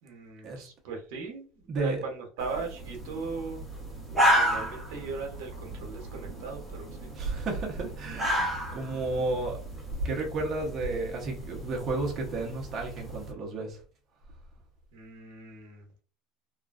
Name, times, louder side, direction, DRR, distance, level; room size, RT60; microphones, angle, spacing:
voice 1, 0.0-1.4 1.7-3.6 4.3-7.1 14.9-15.8, right 4 dB, 80° right, 3 dB, 0.9 m, -38 dB
voice 2, 1.7-2.0 7.1-9.6 10.0-13.8, right 2 dB, 35° right, -1 dB, 0.8 m, -32 dB
Fox Cry, 2.4-13.3, equal, 5° right, 1.1 m, -32 dB
3.0 x 2.3 x 2.4 m, 0.39 s
cardioid pair, 140°, 0 cm